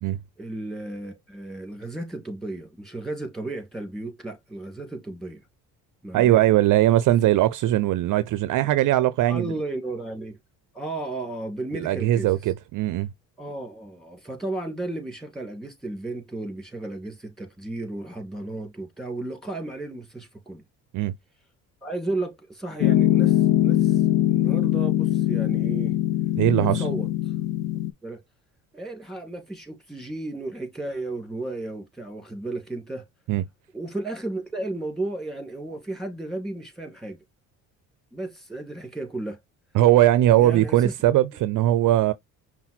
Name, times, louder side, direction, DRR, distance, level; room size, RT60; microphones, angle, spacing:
voice 1, 0.4-5.4 6.0-6.4 9.3-10.4 10.7-12.3 13.4-20.6 21.8-24.0 24.3-26.0 26.6-27.1 28.0-28.2 28.7-33.0 33.7-37.2 38.1-39.4 40.4-40.9, right 2 dB, ahead, 2.5 m, -34 dB
voice 2, 6.1-9.5 11.7-13.1 20.9-21.1 26.4-26.9 33.3-33.4 39.7-42.1, right 14 dB, 55° right, 0.5 m, -20 dB
Piano, 22.8-27.9, left 13 dB, 65° left, 0.5 m, -22 dB
5.6 x 2.2 x 4.2 m
supercardioid pair, 80°, 37 cm